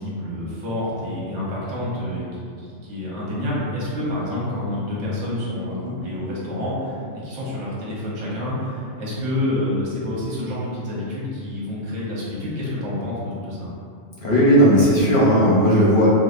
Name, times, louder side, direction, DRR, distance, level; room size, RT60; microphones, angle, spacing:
voice 1, 0.0-13.7, left 1 dB, 75° right, -7 dB, 1.2 m, -28 dB
voice 2, 14.2-16.1, equal, 55° left, -7 dB, 0.7 m, -15 dB
4.8 x 2.1 x 2.4 m, 2.3 s
omnidirectional pair, 1.2 m